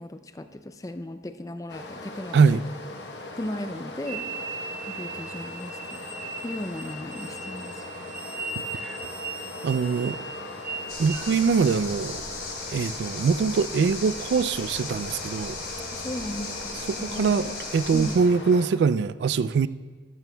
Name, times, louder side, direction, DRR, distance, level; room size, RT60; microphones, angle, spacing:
voice 1, 0.0-2.6 3.4-4.3 4.9-6.0 6.4-7.8 15.9-17.3 17.9-18.2, left 1 dB, 20° left, 0.4 m, -36 dB
Stream, 1.7-18.7, left 2 dB, 70° left, 1.0 m, -40 dB
sound 1, 4.1-11.2, right 4 dB, 50° right, 1.0 m, -38 dB
voice 2, 9.6-10.2 11.0-12.2 12.7-15.6 16.9-19.7, right 5 dB, 70° right, 0.3 m, -23 dB
sound 2, 10.9-18.2, left 3 dB, 50° left, 2.8 m, -37 dB
14.0 x 12.0 x 2.2 m
head